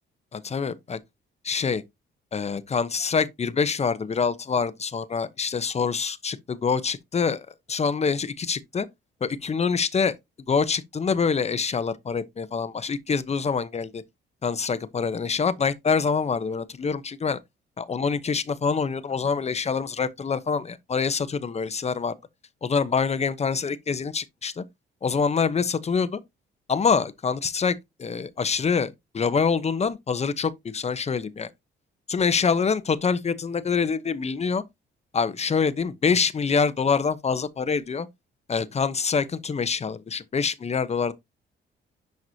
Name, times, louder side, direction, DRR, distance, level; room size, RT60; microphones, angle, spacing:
voice 1, 0.3-1.0 1.4-1.8 2.3-8.9 9.2-10.1 10.5-14.0 14.4-17.4 17.8-22.1 22.6-24.6 25.0-26.2 26.7-31.5 32.1-34.6 35.1-38.1 38.5-41.1, left 5 dB, 35° left, 0.9 m, -25 dB
10.5 x 4.7 x 2.8 m
cardioid pair, 90°, 20 cm